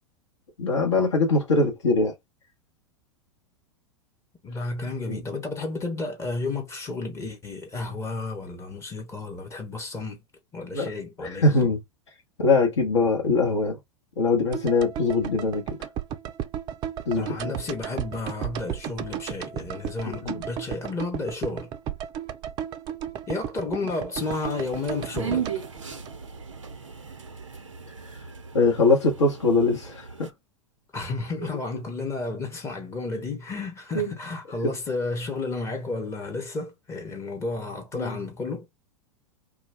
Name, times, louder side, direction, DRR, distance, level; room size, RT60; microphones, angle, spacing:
voice 1, 0.6-2.1 5.1-5.2 10.7-10.9 11.2-11.8 12.4-13.8 14.2-15.8 17.1-17.6 20.1-20.4 28.5-30.3 33.9-34.1 34.6-34.7 37.9-38.2, left 3 dB, 65° left, 0.9 m, -22 dB
voice 2, 4.4-10.2 10.5-11.7 17.2-21.7 23.3-25.6 30.9-38.7, left 3 dB, 15° left, 0.7 m, -32 dB
sound 1, 14.5-26.7 27.0-27.1, right 9 dB, 30° right, 0.4 m, -35 dB
sound 2, 24.2-30.3, right 7 dB, 85° right, 0.5 m, -36 dB
2.2 x 2.2 x 3.3 m
figure-of-eight pair, 90°, 16 cm